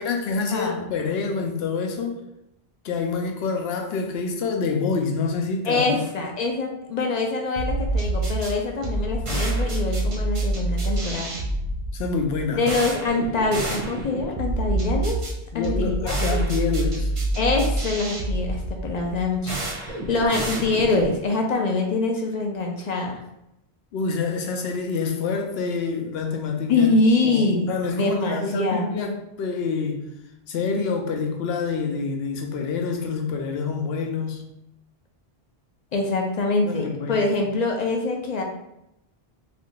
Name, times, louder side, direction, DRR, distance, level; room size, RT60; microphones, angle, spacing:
voice 1, 0.0-2.2 2.8-6.0 11.9-12.6 15.5-17.1 23.9-26.9 27.2-30.0 30.5-34.5 36.6-37.3, left 5 dB, 75° left, 0.8 m, -27 dB
voice 2, 0.5-0.9 5.7-11.3 12.6-15.2 15.5-16.2 17.4-23.2 26.7-28.9 35.9-38.4, left 3 dB, 55° left, 0.5 m, -24 dB
sound 1, 7.6-21.2, right 2 dB, 35° right, 0.6 m, -27 dB
2.6 x 2.3 x 3.7 m
omnidirectional pair, 1.0 m